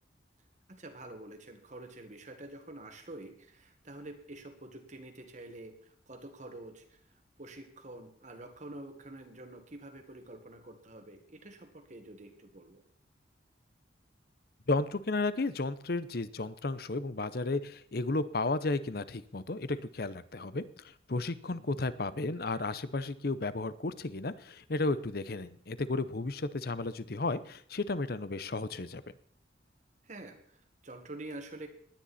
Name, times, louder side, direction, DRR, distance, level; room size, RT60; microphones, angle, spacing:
voice 1, 0.7-7.1 7.4-12.8 21.5-21.8 30.0-31.7, right 2 dB, 40° right, 6 dB, 1.7 m, -47 dB
voice 2, 14.7-29.0, left 3 dB, 55° left, 15 dB, 0.8 m, -33 dB
19.0 x 10.5 x 4.2 m, 0.63 s
head